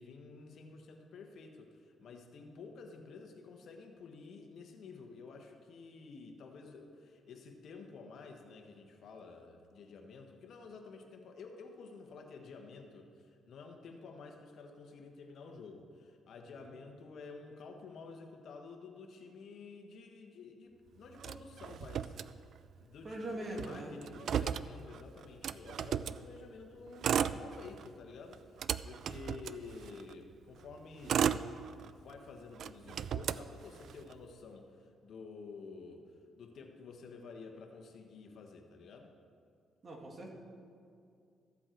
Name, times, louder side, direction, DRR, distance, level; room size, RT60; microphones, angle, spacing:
voice 1, 0.0-22.5 22.8-31.4 31.8-39.1, left 4 dB, 65° left, 3 dB, 1.3 m, -51 dB
Motor vehicle (road), 21.2-22.8 23.1-23.2 23.5-26.2 26.9-27.9 28.3-30.1 30.7-32.1 32.6-34.1, right 8 dB, 65° right, 0.3 m, -35 dB
voice 2, 23.0-24.0 39.8-40.3, right 1 dB, 40° right, 0 dB, 2.3 m, -42 dB
14.5 x 7.7 x 4.5 m, 2.4 s
cardioid pair, 90°, 0 cm